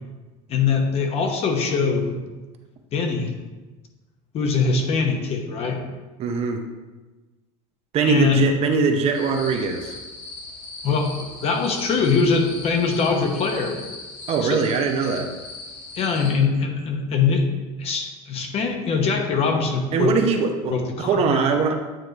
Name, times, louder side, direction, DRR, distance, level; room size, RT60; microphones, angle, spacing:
voice 1, 0.5-2.2 2.9-3.3 4.3-5.8 8.0-8.5 10.8-11.1 11.4-13.8 14.4-14.7 16.0-17.5 17.8-20.1 20.7-21.4, left 5 dB, 40° left, 3 dB, 0.9 m, -22 dB
voice 2, 6.2-6.6 7.9-10.0 14.3-15.3 19.9-20.7 21.0-21.7, right 5 dB, 40° right, 5 dB, 0.7 m, -21 dB
sound 1, 9.1-16.4, left 3 dB, 75° left, 1.8 m, -39 dB
8.9 x 3.2 x 3.9 m, 1.2 s
supercardioid pair, 130°, 16 cm